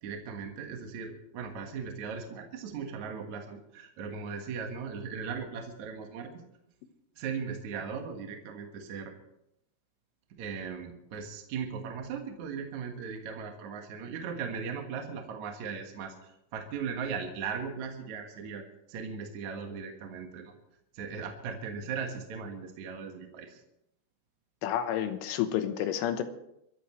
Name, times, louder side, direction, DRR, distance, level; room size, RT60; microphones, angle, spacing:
voice 1, 0.0-6.4 7.2-9.1 10.4-20.5 20.9-23.6, right 6 dB, 60° right, 3 dB, 2.0 m, -38 dB
voice 2, 24.6-26.2, left 10 dB, 80° left, 9 dB, 3.5 m, -30 dB
26.0 x 14.0 x 3.2 m, 0.80 s
omnidirectional pair, 5.6 m